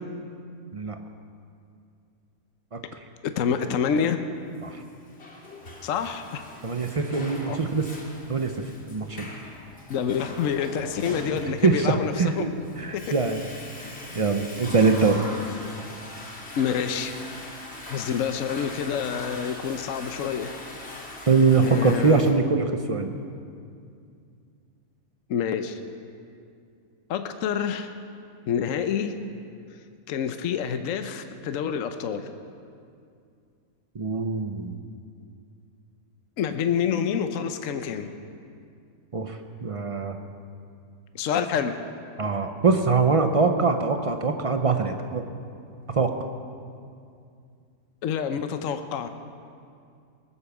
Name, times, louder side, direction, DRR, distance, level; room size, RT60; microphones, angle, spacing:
voice 1, 3.2-4.2 5.8-6.4 7.5-7.6 9.9-12.5 12.9-13.1 16.6-17.1 17.9-20.7 21.6-22.3 25.3-25.8 27.1-27.9 28.5-29.2 30.1-32.3 36.4-38.1 41.1-41.8 48.0-49.1, left 7 dB, 65° left, 8 dB, 1.0 m, -27 dB
Water / Toilet flush, 4.8-22.3, left 1 dB, 45° left, 2.2 m, -41 dB
voice 2, 6.6-7.9 8.3-8.5 8.9-9.3 11.1-12.5 12.8-13.4 14.1-15.2 21.3-23.1 33.9-34.8 39.1-40.2 42.2-45.2 45.9-46.1, right 4 dB, 60° right, 6 dB, 0.3 m, -23 dB
19.5 x 8.5 x 7.1 m, 2.4 s
omnidirectional pair, 1.7 m